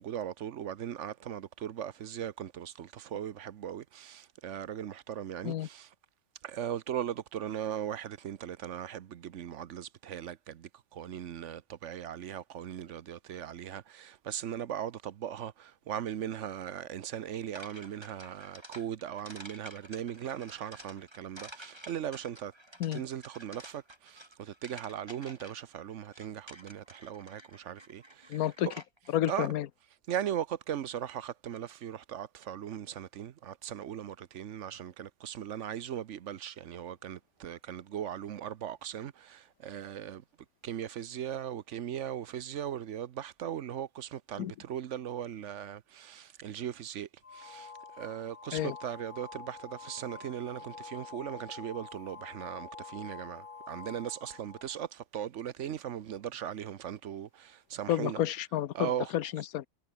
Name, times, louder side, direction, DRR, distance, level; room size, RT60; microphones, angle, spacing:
voice 1, 0.0-5.9 6.4-22.5 22.9-28.7 29.3-29.5 30.1-40.2 40.6-58.2 58.7-59.1, right 10 dB, 60° right, 1.0 m, -39 dB
sound 1, 17.5-29.1, right 1 dB, 15° right, 7.6 m, -51 dB
voice 2, 28.3-28.7 29.1-29.6 44.4-44.5 48.5-48.7 57.9-59.7, left 12 dB, 80° left, 1.3 m, -30 dB
sound 2, 47.2-54.8, left 5 dB, 40° left, 1.6 m, -47 dB
omnidirectional pair, 1.5 m